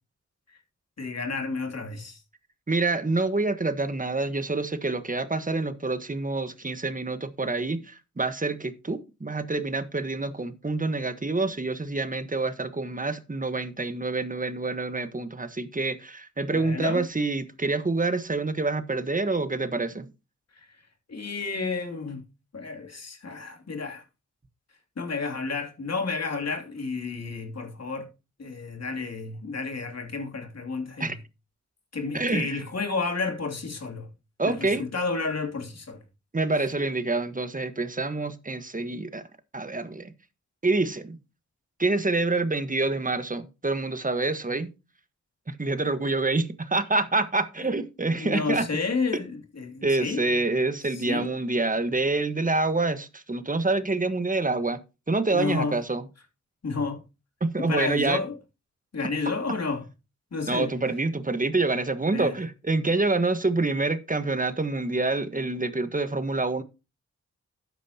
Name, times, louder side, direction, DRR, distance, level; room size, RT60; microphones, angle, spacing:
voice 1, 1.0-2.2 16.5-17.1 20.5-20.7 21.1-22.2 22.5-24.0 25.0-28.1 28.4-31.2 31.9-34.1 34.5-36.0 47.6-47.7 48.1-50.2 50.9-51.3 55.3-55.8 56.6-57.0 57.6-58.4 58.9-59.9 60.3-60.7 62.1-62.3, left 4 dB, 60° left, 2.9 m, -31 dB
voice 2, 2.7-20.1 31.0-31.2 32.1-32.6 34.4-34.8 36.3-39.3 39.5-40.1 40.6-41.2 41.8-44.7 45.5-48.7 49.8-54.8 55.1-56.0 57.4-58.2 60.5-66.6, right 3 dB, 25° right, 1.4 m, -27 dB
12.0 x 9.2 x 2.9 m
cardioid pair, 50°, 30 cm